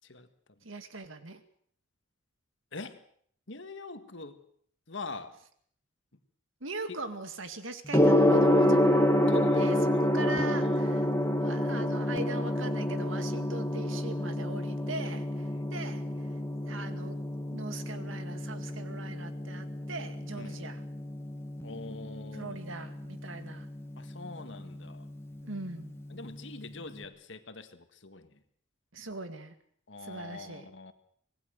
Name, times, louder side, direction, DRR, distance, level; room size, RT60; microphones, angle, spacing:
voice 1, 0.6-1.4 6.6-9.0 9.5-16.0 16.7-17.2 17.5-20.8 22.3-23.7 25.4-26.0 28.9-29.5 30.0-30.7, right 2 dB, 75° right, 9 dB, 2.1 m, -41 dB
voice 2, 3.5-4.4 4.9-5.3 9.3-9.7 10.0-10.1 10.6-10.8 15.5-15.7 16.1-16.2 20.4-20.6 21.6-22.6 24.0-25.1 26.1-28.3 29.9-30.9, left 3 dB, 65° left, 9 dB, 1.8 m, -43 dB
Gong, 7.9-26.9, left 1 dB, 15° left, 1.7 m, -29 dB
25.0 x 18.5 x 6.5 m, 0.62 s
head